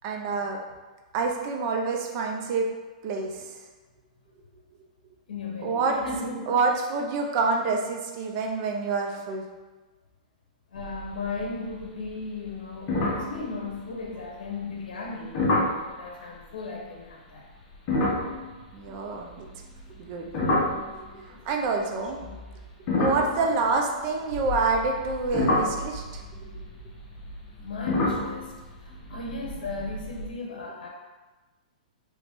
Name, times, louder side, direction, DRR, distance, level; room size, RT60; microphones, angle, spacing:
voice 1, 0.0-0.6 1.1-2.7 3.0-3.5 5.6-6.0 6.5-9.4 18.7-19.5 20.0-20.3 21.0-22.2 23.0-26.2 26.5-26.6, right 4 dB, 35° right, 1 dB, 0.5 m, -27 dB
voice 2, 5.3-6.6 10.7-17.4 21.3-21.4 21.6-22.4 27.6-28.6 29.1-30.9, left 3 dB, 80° left, 0 dB, 0.8 m, -36 dB
sound 1, 10.7-11.4 11.7-12.1 12.4-12.5 12.9-14.2 15.3-15.8 17.7-21.3 22.1-24.3 24.9-30.3, left 2 dB, 30° left, 0.8 m, -29 dB
sound 2, 24.3-27.0 27.3-27.4, left 4 dB, 80° right, 1.0 m, -40 dB
3.1 x 2.4 x 3.5 m, 1.2 s
hypercardioid pair, 150°, 4 cm